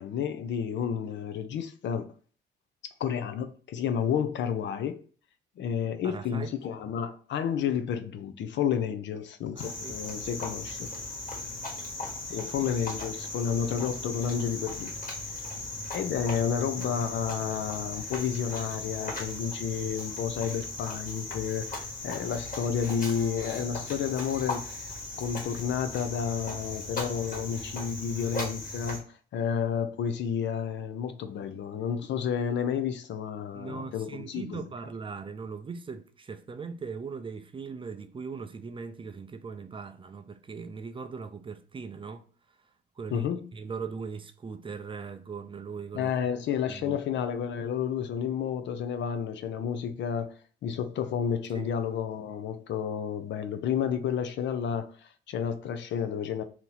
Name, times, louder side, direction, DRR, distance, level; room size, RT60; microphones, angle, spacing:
voice 1, 0.0-2.0 3.0-5.0 5.6-10.9 12.3-14.9 15.9-24.7 25.2-34.7 43.1-43.5 45.9-56.4, left 8 dB, 65° left, 0.5 m, -31 dB
voice 2, 6.0-6.5 9.6-10.0 23.1-23.5 33.5-42.7 43.0-46.1 46.7-47.0 51.5-51.7, right 5 dB, 25° right, 0.4 m, -40 dB
Cricket, 9.6-29.0, left 2 dB, 45° left, 1.4 m, -37 dB
2.9 x 2.8 x 3.8 m
cardioid pair, 90°, 20 cm